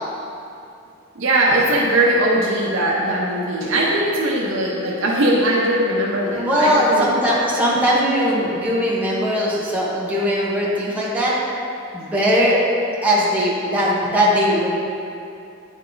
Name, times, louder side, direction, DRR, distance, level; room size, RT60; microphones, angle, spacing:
voice 1, 1.1-7.1, right 1 dB, 75° right, -5 dB, 0.9 m, -20 dB
voice 2, 6.4-11.4 11.9-12.6 13.0-14.7, equal, 10° right, -7 dB, 1.0 m, -19 dB
9.6 x 3.6 x 3.8 m, 2.6 s
head